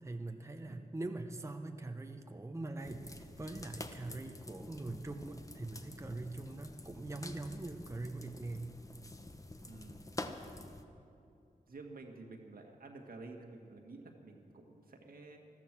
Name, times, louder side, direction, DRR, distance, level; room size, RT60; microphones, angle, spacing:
voice 1, 0.0-8.7, right 2 dB, 20° right, 6 dB, 0.9 m, -43 dB
sound 1, 2.8-10.8, left 2 dB, 20° left, 1.0 m, -48 dB
voice 2, 9.7-10.2 11.7-15.4, right 3 dB, 75° right, 2 dB, 1.7 m, -51 dB
14.0 x 13.5 x 6.1 m, 2.6 s
cardioid pair, 65°, 15 cm